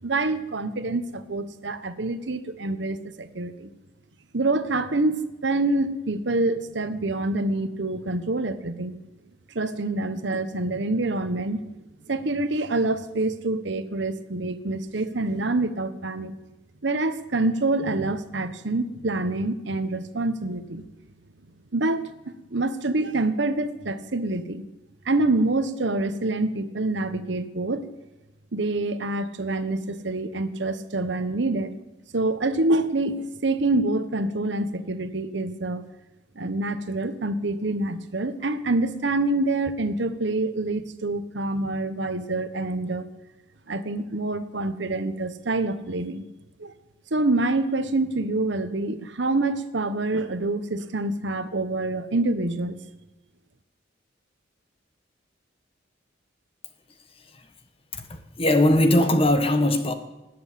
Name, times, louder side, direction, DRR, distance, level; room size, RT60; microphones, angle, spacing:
voice 1, 0.0-3.7 4.3-9.0 9.5-11.6 12.1-16.3 16.8-20.9 21.7-24.6 25.0-27.9 28.5-31.7 32.1-35.8 36.4-43.1 43.7-46.2 46.6-46.7 47.1-52.8, right 2 dB, 70° right, 1.0 m, -26 dB
voice 2, 58.4-59.9, left 1 dB, 30° left, 1.3 m, -19 dB
19.0 x 7.8 x 8.4 m
head